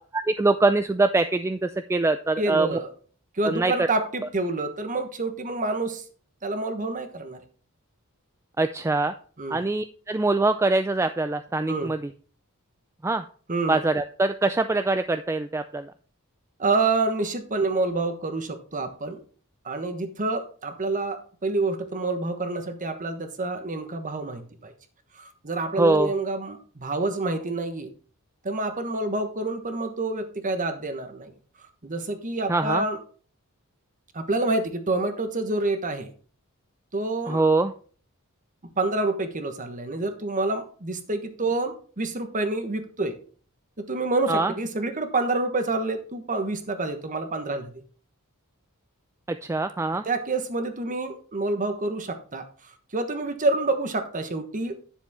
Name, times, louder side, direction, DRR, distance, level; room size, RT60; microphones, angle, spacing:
voice 1, 0.1-2.8 3.4-3.9 8.6-9.1 9.5-12.1 13.0-13.2 13.7-15.9 25.8-26.1 32.5-32.9 37.3-37.7 44.3-44.5 49.3-50.0, right 2 dB, 10° right, 9 dB, 0.3 m, -23 dB
voice 2, 2.4-2.9 3.3-6.0 6.4-7.4 9.4-9.6 11.7-11.9 13.5-13.8 16.6-19.2 19.6-24.7 25.1-27.9 28.4-31.3 31.8-33.0 34.1-36.1 36.9-37.4 38.8-43.1 43.8-47.7 50.0-52.4 52.9-54.7, right 2 dB, 35° right, 8 dB, 1.3 m, -27 dB
10.0 x 7.1 x 3.6 m, 0.43 s
head